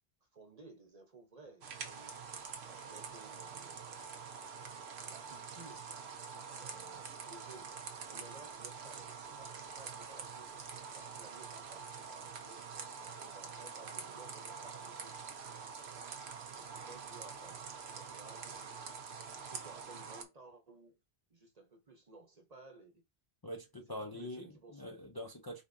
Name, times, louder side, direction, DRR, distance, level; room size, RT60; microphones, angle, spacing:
voice 1, 0.2-2.1 2.6-3.9 4.3-5.9 6.5-7.7 8.1-12.7 13.0-15.3 15.9-16.1 16.6-21.0 21.3-23.0 23.9-25.0, right 3 dB, 40° right, 1.1 m, -57 dB
sound 1, 1.6-20.2, right 6 dB, 90° right, 1.1 m, -46 dB
voice 2, 23.4-24.5 24.7-25.6, left 1 dB, 25° left, 0.6 m, -44 dB
5.3 x 3.6 x 2.7 m
omnidirectional pair, 1.0 m